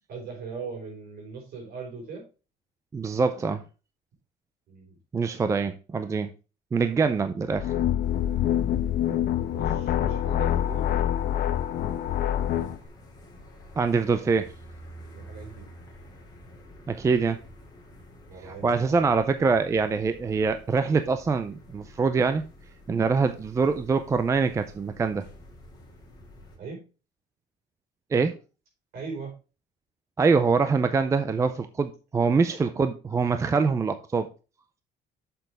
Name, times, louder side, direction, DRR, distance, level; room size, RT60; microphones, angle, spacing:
voice 1, 0.1-2.3 4.7-5.0 9.5-10.9 15.1-15.6 18.3-19.0 26.6-26.8 28.9-29.4, right 5 dB, 60° right, 4.6 m, -39 dB
voice 2, 2.9-3.6 5.1-6.3 6.7-7.7 13.8-14.5 16.9-17.4 18.4-22.4 22.9-25.3 28.1-28.4 30.2-34.3, right 4 dB, 15° right, 0.4 m, -24 dB
sound 1, 7.5-12.8, left 11 dB, 55° left, 1.0 m, -26 dB
sound 2, 8.0-26.6, equal, 20° left, 2.7 m, -49 dB
7.8 x 6.9 x 3.4 m
cardioid pair, 170°, 18 cm